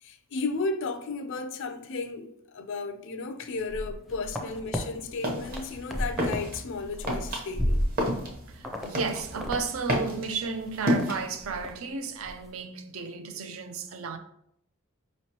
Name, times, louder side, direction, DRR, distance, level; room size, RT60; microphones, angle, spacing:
voice 1, 0.0-7.8, left 3 dB, 60° left, 0.4 m, -34 dB
sound 1, 3.6-4.8 5.2-6.5 6.7-8.3 8.6-8.9 9.2-9.6 9.9-10.0 10.4-11.0 11.4-11.7 12.1-12.3, equal, ahead, 0.5 m, -32 dB
sound 2, 4.8-11.7, equal, 45° right, 0.9 m, -32 dB
voice 2, 8.5-14.2, right 5 dB, 70° right, 0.5 m, -33 dB
5.0 x 3.1 x 2.9 m
head